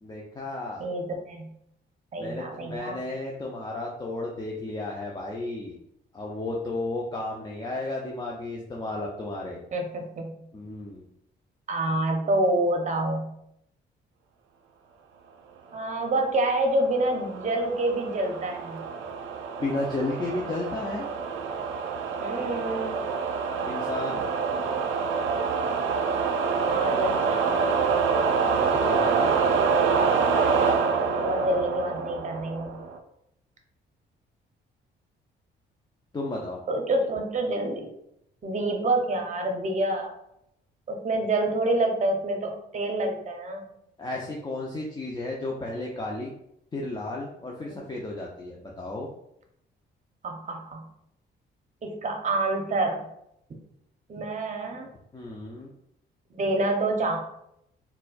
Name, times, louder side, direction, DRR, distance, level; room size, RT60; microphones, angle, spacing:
voice 1, 0.0-0.8 2.2-5.8 6.1-9.6 10.5-11.0 19.6-21.1 23.7-24.3 28.4-29.4 36.1-36.6 44.0-46.3 46.7-49.1 55.1-55.7, left 2 dB, 20° left, -2 dB, 0.5 m, -33 dB
voice 2, 0.8-1.5 2.1-3.0 9.7-10.4 11.7-13.3 15.7-18.8 22.2-23.0 26.7-27.7 30.4-32.8 36.7-37.9 38.4-40.1 40.9-43.7 50.2-50.9 51.8-53.1 54.1-54.9 56.3-57.2, right 2 dB, 35° right, 3 dB, 0.7 m, -27 dB
sound 1, 16.5-33.0, right 5 dB, 75° right, 0.4 m, -26 dB
4.2 x 2.2 x 2.4 m, 0.77 s
cardioid pair, 90°, 20 cm